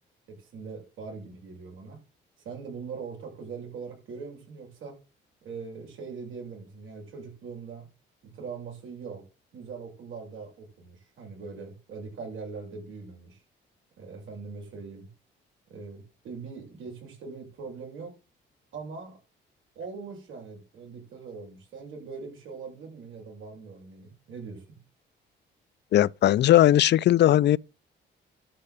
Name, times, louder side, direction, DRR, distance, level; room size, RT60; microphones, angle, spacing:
voice 1, 0.3-2.0 2.4-5.0 5.4-7.9 8.2-9.3 9.5-13.4 14.0-15.1 15.7-18.1 18.7-19.2 19.8-24.8, right 5 dB, 90° right, 7.4 m, -41 dB
voice 2, 25.9-27.6, left 13 dB, 60° left, 0.5 m, -19 dB
12.0 x 5.5 x 8.3 m
cardioid pair, 90°, 20 cm